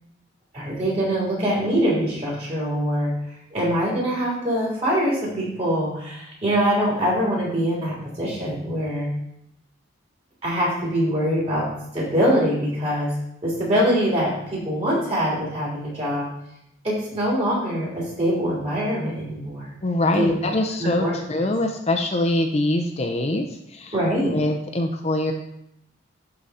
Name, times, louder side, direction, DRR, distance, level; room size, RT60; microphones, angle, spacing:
voice 1, 0.5-3.1 3.5-9.1 10.4-13.1 13.4-16.3 16.8-19.7 20.1-20.5 20.8-21.1 21.4-21.5 23.9-24.4, equal, 35° right, -6 dB, 3.3 m, -23 dB
voice 2, 19.8-23.4 23.7-24.0 24.3-25.3, left 1 dB, 35° left, 4 dB, 0.6 m, -23 dB
11.5 x 3.9 x 4.2 m, 0.78 s
head